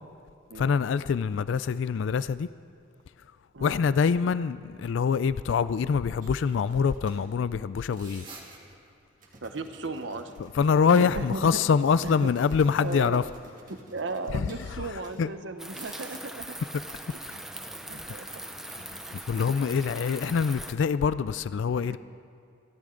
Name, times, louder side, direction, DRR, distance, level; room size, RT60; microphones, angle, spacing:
voice 1, 0.5-2.5 3.6-8.3 10.4-13.2 14.3-14.5 15.2-15.3 19.3-22.0, left 6 dB, 75° left, 0.3 m, -25 dB
sound 1, 6.2-7.5 7.8-8.7 9.2-15.3 15.6-16.3 16.6-19.4, right 2 dB, 45° right, 2.3 m, -53 dB
sound 2, 8.2-9.1 11.8-13.3, right 3 dB, 25° right, 1.9 m, -50 dB
voice 2, 9.4-10.3 10.9-11.5 12.0-12.3 12.8-13.2 13.7-16.5 17.3-18.3 18.9-19.4 21.7-22.0, right 3 dB, 70° right, 0.9 m, -36 dB
sound 3, 15.6-20.7, right 1 dB, ahead, 0.6 m, -41 dB
28.5 x 12.0 x 3.8 m
head